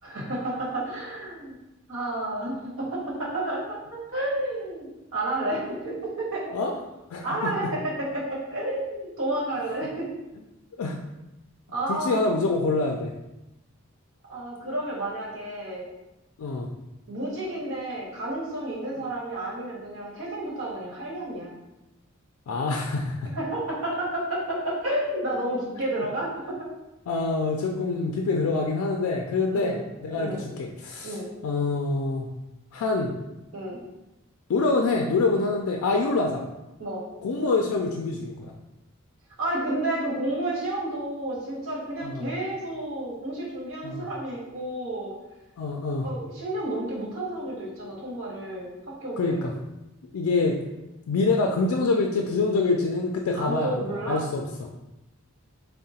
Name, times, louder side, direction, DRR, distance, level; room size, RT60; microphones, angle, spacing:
voice 1, 0.0-1.5 1.9-6.4 7.2-10.1 11.7-12.2 14.3-15.9 17.1-21.5 23.3-26.7 29.5-29.8 30.1-30.4 31.0-31.3 33.5-33.8 36.8-37.0 39.4-45.1 46.0-49.4 53.4-54.2, right 1 dB, 65° right, -5 dB, 1.2 m, -31 dB
voice 2, 7.1-7.5 10.8-11.0 11.9-13.1 16.4-16.7 22.5-23.3 27.1-31.2 31.4-32.3 32.7-33.1 34.5-36.4 37.2-38.5 42.0-42.3 43.8-44.1 45.6-46.1 49.2-49.5 50.1-50.6 51.1-54.4, left 3 dB, 85° left, 1 dB, 0.4 m, -26 dB
3.7 x 2.1 x 4.1 m, 0.97 s
head